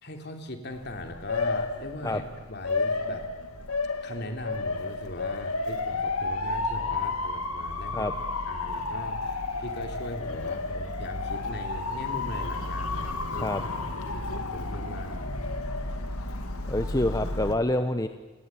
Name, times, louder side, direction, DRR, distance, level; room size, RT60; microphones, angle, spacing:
voice 1, 0.0-3.3 4.0-8.2 8.5-13.5 14.1-15.3, left 1 dB, 50° left, 5 dB, 3.1 m, -39 dB
Motor vehicle (road) / Siren, 0.7-17.5, left 3 dB, 90° left, 2.5 m, -32 dB
voice 2, 16.7-18.1, left 1 dB, 15° left, 8 dB, 0.8 m, -26 dB
29.0 x 19.5 x 8.9 m, 1.3 s
head